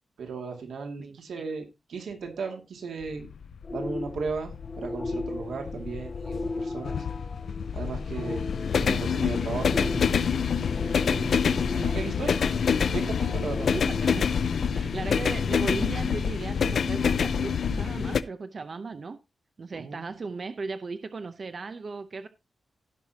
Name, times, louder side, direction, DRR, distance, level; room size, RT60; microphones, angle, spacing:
voice 1, 0.2-3.3 3.7-7.0 7.7-10.1 11.1-12.4 12.9-13.7 19.7-20.1, right 4 dB, 90° right, 3 dB, 2.3 m, -36 dB
sound 1, 3.0-18.2, left 6 dB, 65° left, 0.5 m, -27 dB
sound 2, 3.6-15.0, left 3 dB, 35° left, 2.0 m, -38 dB
voice 2, 13.7-14.2 14.7-19.2 19.6-22.3, right 4 dB, 40° right, 10 dB, 0.7 m, -36 dB
17.0 x 6.0 x 2.9 m, 0.25 s
wide cardioid pair, 140°, 0 cm